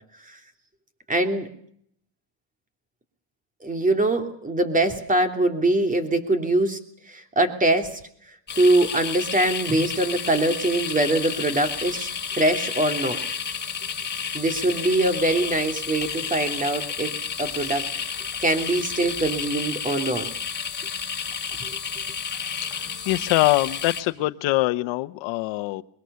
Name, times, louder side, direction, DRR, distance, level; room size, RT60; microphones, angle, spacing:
voice 1, 1.1-1.5 3.6-6.8 7.1-8.0 8.6-12.1 12.3-13.2 14.3-17.1 17.4-17.8 18.4-20.3, right 2 dB, 15° right, 7 dB, 3.0 m, -23 dB
sound 1, 8.5-24.0, left 6 dB, 20° left, 3.9 m, -31 dB
voice 2, 22.7-25.8, left 19 dB, 70° left, 9 dB, 1.1 m, -23 dB
22.0 x 21.0 x 6.9 m, 0.67 s
cardioid pair, 110°, 46 cm